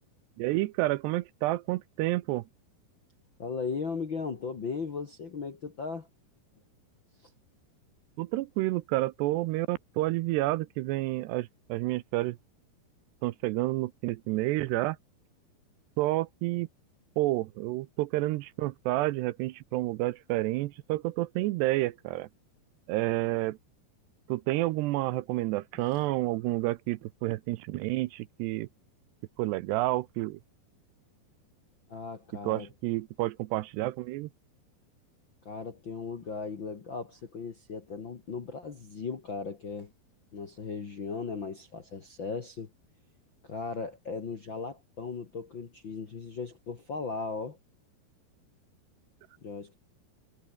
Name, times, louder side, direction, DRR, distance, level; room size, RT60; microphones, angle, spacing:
voice 1, 0.4-2.4 8.2-12.4 13.2-15.0 16.0-16.7 17.2-22.3 22.9-23.6 24.3-28.7 29.4-30.4 32.4-34.3, right 18 dB, 80° right, 2.7 m, -29 dB
voice 2, 3.4-6.1 25.9-26.0 31.9-32.7 35.4-39.9 40.3-42.7 43.4-47.6 49.4-49.8, left 4 dB, 45° left, 1.5 m, -37 dB
omnidirectional pair, 5.1 m